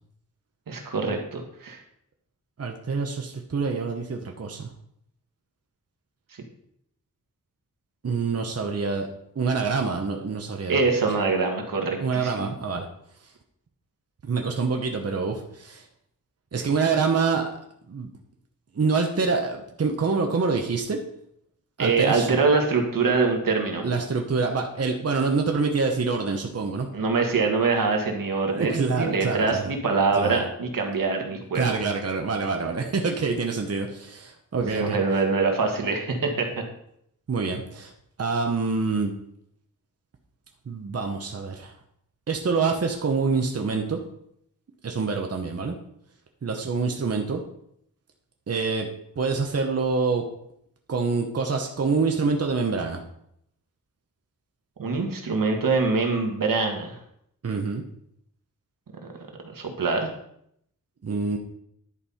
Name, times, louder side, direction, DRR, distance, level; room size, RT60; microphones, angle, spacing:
voice 1, 0.7-1.8 10.7-12.5 21.8-23.9 26.9-31.8 34.7-36.6 54.8-57.0 59.5-60.1, right 4 dB, 80° right, 3 dB, 1.6 m, -24 dB
voice 2, 2.6-4.7 8.0-9.1 9.4-10.8 12.0-12.9 14.2-15.8 16.5-17.5 17.9-18.1 18.7-21.0 21.8-22.4 23.8-26.9 28.5-29.7 30.2-30.4 31.5-35.0 37.3-37.9 38.2-39.1 40.7-41.7 42.3-44.0 44.8-45.8 46.4-47.4 48.5-48.9 49.2-50.2 50.9-53.0 57.4-57.8 61.0-61.4, right 4 dB, 50° right, 2 dB, 1.0 m, -26 dB
11.0 x 5.4 x 4.3 m, 0.72 s
wide cardioid pair, 100°, 32 cm